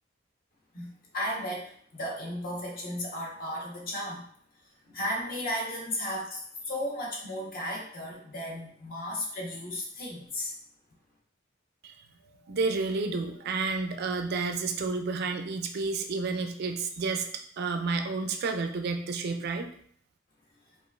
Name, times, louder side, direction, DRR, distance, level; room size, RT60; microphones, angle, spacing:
voice 1, 0.7-4.2 4.9-10.5, equal, 45° left, -2 dB, 1.0 m, -35 dB
voice 2, 12.2-17.3 17.6-19.7, right 4 dB, 50° right, 6 dB, 0.4 m, -30 dB
5.0 x 2.4 x 2.3 m, 0.63 s
head